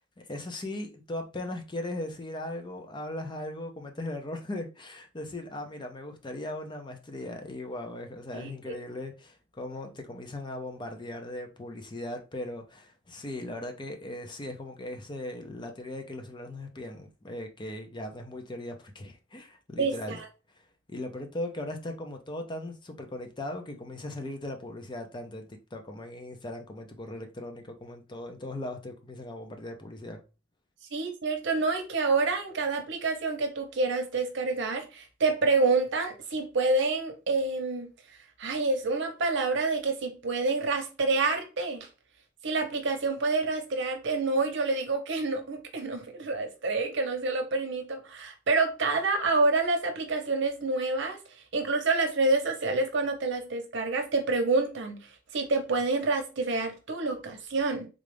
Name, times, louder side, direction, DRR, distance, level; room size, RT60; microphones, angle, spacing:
voice 1, 0.0-20.2 20.9-30.2, left 1 dB, 25° left, 0.6 m, -38 dB
voice 2, 19.8-20.2 30.9-37.9 38.4-41.9 42.4-51.2 51.5-55.0 55.3-57.9, right 3 dB, 65° right, 0.8 m, -28 dB
3.7 x 2.3 x 3.3 m
head